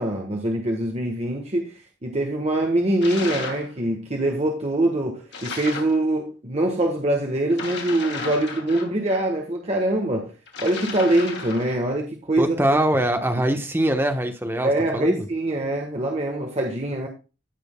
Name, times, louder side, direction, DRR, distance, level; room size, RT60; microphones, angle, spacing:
voice 1, 0.0-10.3 10.6-12.8 14.6-17.1, right 1 dB, 35° right, 1.5 m, -24 dB
sound 1, 3.0-3.7 5.3-6.0 7.5-9.2 10.5-11.8, left 4 dB, 60° left, 2.8 m, -34 dB
voice 2, 12.4-15.2, right 1 dB, 10° right, 1.1 m, -23 dB
16.5 x 6.2 x 2.3 m
head